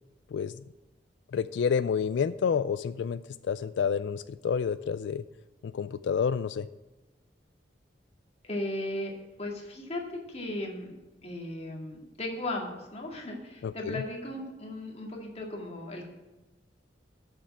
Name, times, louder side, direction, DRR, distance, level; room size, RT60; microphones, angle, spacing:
voice 1, 1.3-3.2 3.5-5.2 5.6-6.7 13.6-14.0, left 6 dB, 70° left, 13 dB, 0.3 m, -29 dB
voice 2, 8.4-9.1 9.4-10.9 11.2-16.0, left 1 dB, 35° left, -1 dB, 2.1 m, -36 dB
7.9 x 6.5 x 7.4 m, 1.1 s
head